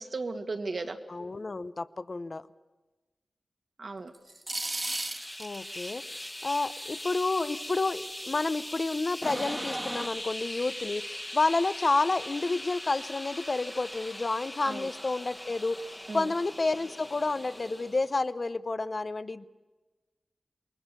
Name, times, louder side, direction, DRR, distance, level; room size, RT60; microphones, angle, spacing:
voice 1, 0.0-1.0 3.8-4.1 14.6-14.9 16.1-16.3, right 3 dB, 60° right, 6 dB, 2.0 m, -35 dB
voice 2, 1.1-2.4 5.4-6.0 6.4-11.0 11.3-15.8 16.1-19.5, left 3 dB, 45° left, 13 dB, 0.7 m, -30 dB
sound 1, 4.1-5.6 8.9-10.1, right 2 dB, 30° right, 1.7 m, -34 dB
sound 2, 4.8-18.2, left 1 dB, 15° left, 1.3 m, -41 dB
28.0 x 20.5 x 6.8 m, 1.2 s
wide cardioid pair, 80°, 0 cm